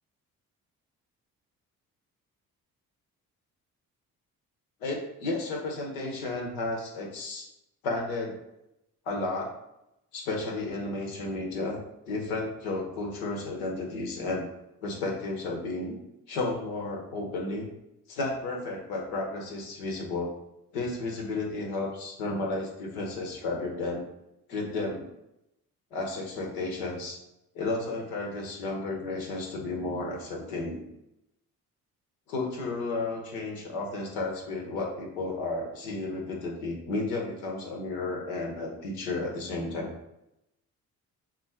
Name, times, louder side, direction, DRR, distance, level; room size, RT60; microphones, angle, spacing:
voice 1, 4.8-7.5 7.8-8.4 9.1-9.5 10.1-11.8 12.1-14.5 14.8-16.0 16.3-17.7 18.1-20.3 20.7-24.0 24.5-25.0 25.9-27.2 27.5-30.8 32.3-39.9, left 2 dB, 70° left, 0 dB, 1.0 m, -32 dB
3.8 x 2.5 x 4.5 m, 0.87 s
figure-of-eight pair, 40°, 44 cm